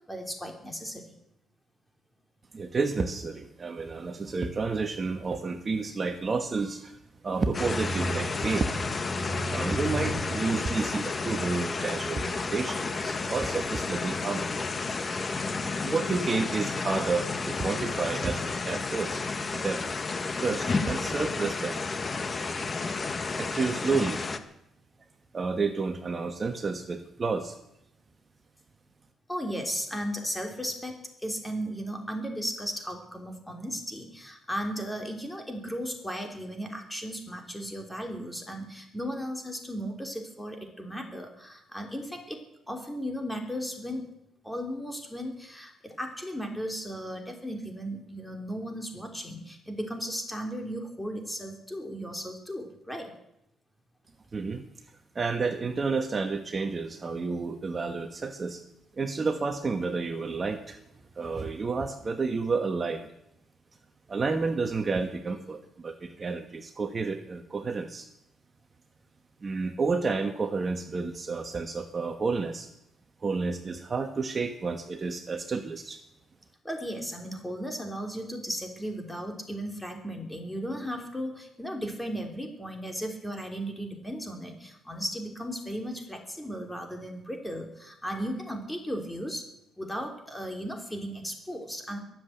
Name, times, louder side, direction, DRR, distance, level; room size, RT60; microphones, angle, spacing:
voice 1, 0.1-1.1 13.2-13.3 29.3-44.0 44.4-53.1 76.6-89.5 89.8-92.0, equal, 5° left, 3 dB, 3.4 m, -36 dB
voice 2, 2.5-7.0 7.2-8.7 9.5-14.5 15.7-19.8 20.4-21.8 23.4-24.2 25.3-27.6 54.3-54.7 55.1-58.6 59.0-60.8 61.1-63.1 64.1-68.1 69.4-72.7 73.2-76.0, right 4 dB, 35° right, 6 dB, 1.2 m, -30 dB
sound 1, 7.5-24.4, left 3 dB, 35° left, 1.2 m, -31 dB
22.0 x 7.8 x 8.1 m, 0.81 s
cardioid pair, 90°, 0 cm